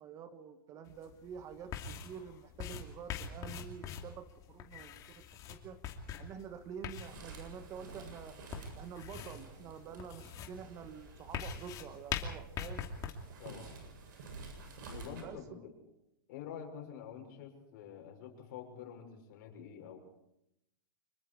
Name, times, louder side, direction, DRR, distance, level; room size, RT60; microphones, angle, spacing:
voice 1, 0.0-5.0 5.4-5.8 6.1-8.4 8.7-12.8 15.2-15.6, right 7 dB, 25° right, 10 dB, 1.3 m, -48 dB
sound 1, 0.9-13.1, left 7 dB, 30° left, 2.6 m, -44 dB
sound 2, 7.0-15.2, right 3 dB, 60° right, 7.6 m, -51 dB
voice 2, 13.4-14.0 14.9-15.7 16.3-20.0, left 8 dB, 50° left, 3 dB, 6.1 m, -47 dB
25.5 x 22.5 x 4.8 m, 0.84 s
hypercardioid pair, 135°, 12 cm